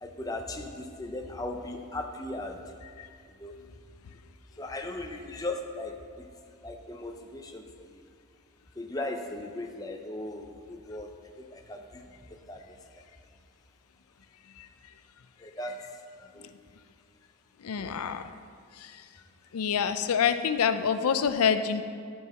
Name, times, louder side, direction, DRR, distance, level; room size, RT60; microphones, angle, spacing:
voice 1, 0.0-2.6 3.4-3.5 4.6-6.3 6.6-7.9 8.8-11.1 11.5-12.0 12.5-12.6 15.4-15.8 16.3-16.5 17.8-17.9, left 2 dB, 15° left, 3 dB, 0.5 m, -37 dB
voice 2, 17.6-18.3 18.8-19.0 19.5-21.8, left 7 dB, 80° left, 10 dB, 0.4 m, -27 dB
11.0 x 4.7 x 6.8 m, 2.2 s
head